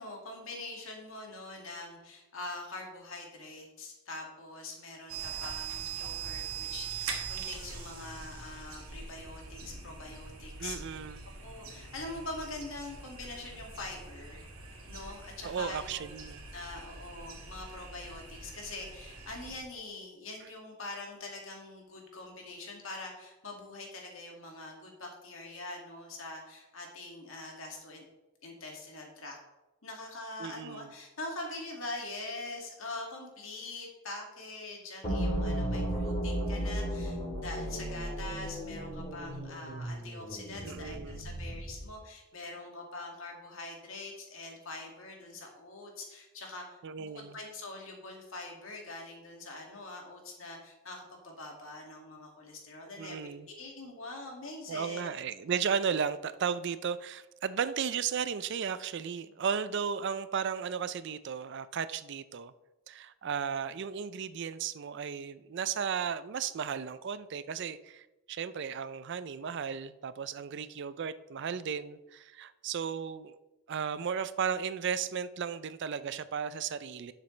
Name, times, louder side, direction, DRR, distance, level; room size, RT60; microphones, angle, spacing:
voice 1, 0.0-10.8 11.4-14.5 14.9-16.0 16.5-28.0 28.4-29.4 29.8-55.2, left 2 dB, 70° left, 0 dB, 2.1 m, -44 dB
sound 1, 5.1-19.6, right 6 dB, 90° right, 1.9 m, -43 dB
voice 2, 10.6-11.3 15.4-16.5 30.4-30.9 40.6-41.3 46.8-47.4 53.0-53.5 54.7-62.5 62.9-73.4 73.7-77.1, right 7 dB, 55° right, 14 dB, 0.4 m, -35 dB
sound 2, 35.0-41.9, right 1 dB, 25° left, 3.3 m, -35 dB
11.5 x 6.7 x 3.2 m, 1.0 s
head